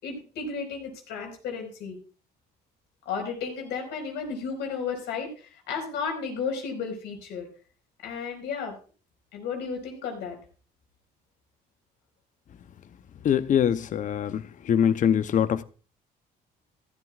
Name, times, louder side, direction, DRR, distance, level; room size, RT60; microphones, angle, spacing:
voice 1, 0.0-2.0 3.0-7.5 8.0-8.7 9.3-10.4, left 5 dB, 80° left, 4.7 m, -33 dB
voice 2, 13.2-14.4 14.7-15.6, left 9 dB, 45° left, 0.7 m, -23 dB
14.0 x 13.0 x 2.4 m
cardioid pair, 115°, 18 cm